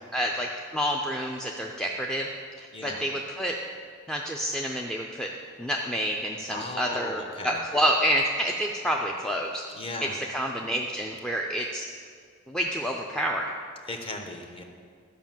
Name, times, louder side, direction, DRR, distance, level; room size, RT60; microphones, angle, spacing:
voice 1, 0.1-2.3 2.6-3.6 4.1-5.3 5.6-9.6 10.0-11.9 12.5-13.5, equal, 5° left, 0 dB, 0.4 m, -28 dB
voice 2, 2.7-3.0 6.5-7.6 9.7-10.1 13.9-14.6, left 1 dB, 25° left, 4 dB, 0.8 m, -36 dB
11.5 x 5.3 x 7.3 m, 2.1 s
head